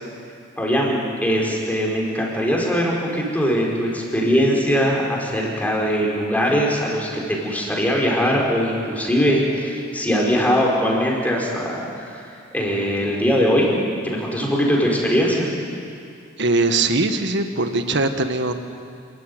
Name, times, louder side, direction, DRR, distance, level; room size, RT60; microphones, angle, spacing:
voice 1, 0.6-12.3 12.5-13.7 14.0-15.5, equal, 10° left, -2 dB, 4.7 m, -21 dB
voice 2, 16.4-18.5, right 2 dB, 60° right, 7 dB, 1.5 m, -21 dB
28.0 x 14.0 x 9.6 m, 2.4 s
head